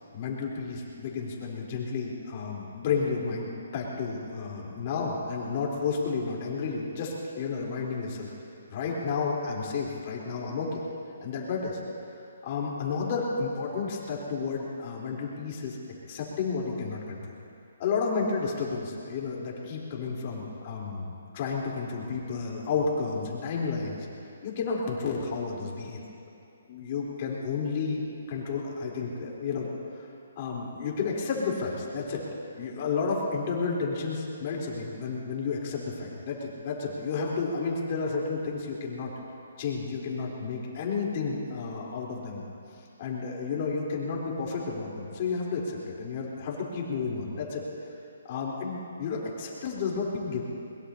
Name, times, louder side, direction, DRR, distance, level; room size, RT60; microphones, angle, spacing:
voice 1, 0.1-8.3 8.7-10.8 11.2-11.8 12.4-15.8 16.1-17.2 17.8-21.1 21.3-24.1 24.4-26.0 26.7-28.0 28.3-29.7 30.4-32.2 32.5-39.1 39.6-42.4 43.0-47.6 48.2-50.4, left 4 dB, 40° left, -3 dB, 3.7 m, -31 dB
22.0 x 22.0 x 2.8 m, 2.6 s
hypercardioid pair, 155°, 0 cm